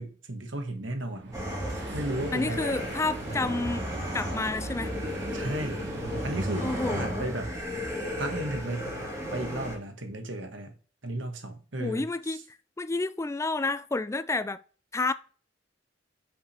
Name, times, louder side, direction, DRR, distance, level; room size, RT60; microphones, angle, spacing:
voice 1, 0.0-1.4 1.9-2.8 5.3-5.9 6.2-7.5 8.2-8.9 9.3-10.8 11.0-12.4, right 1 dB, 80° right, 1.5 m, -34 dB
sound 1, 1.0-7.0, right 2 dB, 65° right, 1.5 m, -41 dB
sound 2, 1.3-9.8, equal, 20° right, 2.7 m, -34 dB
voice 2, 2.3-3.9 4.1-4.9 6.6-7.3 11.8-12.4 12.8-14.6 14.9-15.1, left 3 dB, 15° left, 0.3 m, -30 dB
6.0 x 5.0 x 4.3 m
head